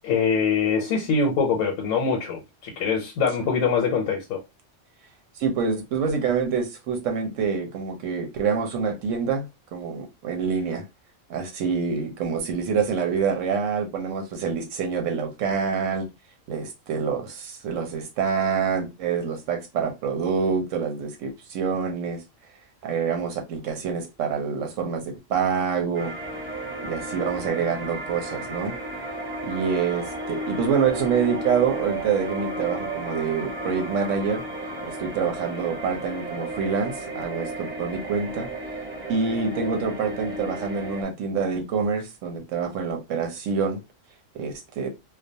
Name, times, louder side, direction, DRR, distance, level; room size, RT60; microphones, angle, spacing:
voice 1, 0.0-4.4, left 5 dB, 85° left, 1.0 m, -23 dB
voice 2, 5.4-9.5 9.7-10.8 11.3-16.1 16.5-22.2 22.8-26.1 26.8-28.8 29.4-34.4 34.9-38.5 39.1-43.8 44.3-44.9, right 6 dB, 90° right, 1.0 m, -26 dB
sound 1, 25.9-41.0, right 1 dB, 10° right, 0.6 m, -33 dB
2.3 x 2.1 x 2.6 m
omnidirectional pair, 1.3 m